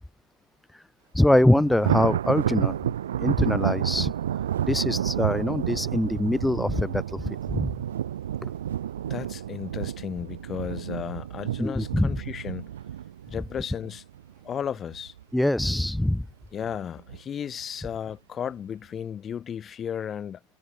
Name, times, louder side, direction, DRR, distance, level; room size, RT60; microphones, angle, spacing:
voice 1, 1.1-2.8 3.2-4.1 4.7-7.7 11.6-12.2 15.3-16.3, left 1 dB, 5° left, 0.5 m, -23 dB
Thunder, 1.2-14.5 14.9-15.2 15.6-15.7 16.6-17.2, right 10 dB, 60° right, 1.6 m, -30 dB
voice 2, 9.0-12.7 13.3-14.0 14.4-15.1 16.5-20.6, left 8 dB, 25° left, 2.7 m, -34 dB
figure-of-eight pair, 90°, 0 cm